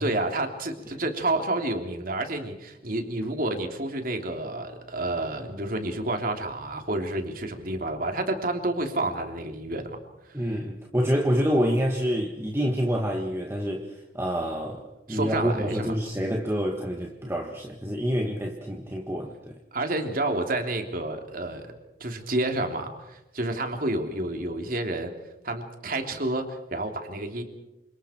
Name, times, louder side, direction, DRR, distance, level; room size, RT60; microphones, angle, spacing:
voice 1, 0.0-10.0 10.3-10.4 15.1-15.9 19.7-21.7 22.0-25.1 25.4-27.4, right 2 dB, 50° right, 4 dB, 3.2 m, -29 dB
voice 2, 10.3-19.6, equal, 15° right, 1 dB, 1.7 m, -27 dB
28.5 x 27.0 x 4.5 m, 0.94 s
head